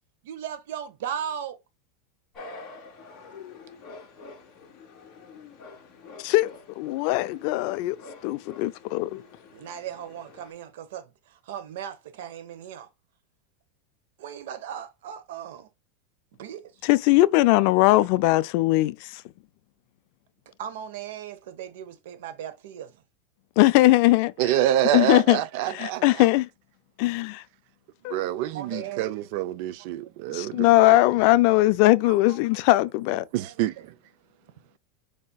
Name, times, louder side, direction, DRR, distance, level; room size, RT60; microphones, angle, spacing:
voice 1, 0.2-1.6 9.5-12.9 14.2-15.7 16.4-16.6 20.6-23.0 28.5-29.0 32.1-32.8 33.1-33.5, right 9 dB, 70° right, 1.0 m, -37 dB
sound 1, 2.3-10.5, left 4 dB, 25° left, 2.1 m, -46 dB
voice 2, 6.8-8.0 8.2-9.2 16.8-19.1 23.6-24.3 24.9-25.4 25.7-26.4 27.0-27.4 28.0-28.2 30.3-33.3, left 18 dB, 50° left, 0.4 m, -20 dB
voice 3, 24.4-26.3 28.1-31.0 33.3-33.9, right 12 dB, 55° right, 0.5 m, -27 dB
4.9 x 4.3 x 2.3 m
supercardioid pair, 155°, 0 cm